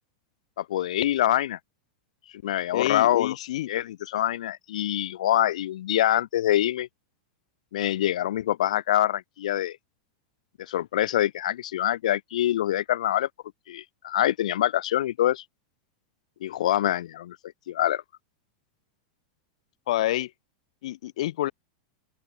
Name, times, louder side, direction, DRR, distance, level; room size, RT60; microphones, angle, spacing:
voice 1, 0.6-1.6 2.4-3.3 3.7-6.9 7.7-9.8 10.6-13.3 13.7-15.4 16.4-17.4 17.7-18.0, left 12 dB, 80° left, 1.5 m, -25 dB
voice 2, 2.7-3.7 19.9-20.3 20.8-21.5, left 14 dB, 65° left, 2.4 m, -27 dB
open air
supercardioid pair, 175°, 4 cm